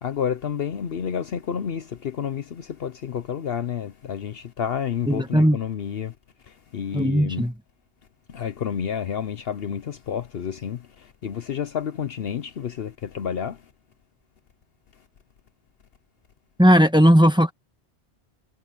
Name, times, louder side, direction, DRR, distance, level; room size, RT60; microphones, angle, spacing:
voice 1, 0.0-6.1 6.4-7.5 8.3-13.6, left 8 dB, 60° left, 0.9 m, -30 dB
voice 2, 5.1-5.6 6.9-7.5 16.6-17.5, equal, 5° right, 1.4 m, -17 dB
omnidirectional pair, 1.2 m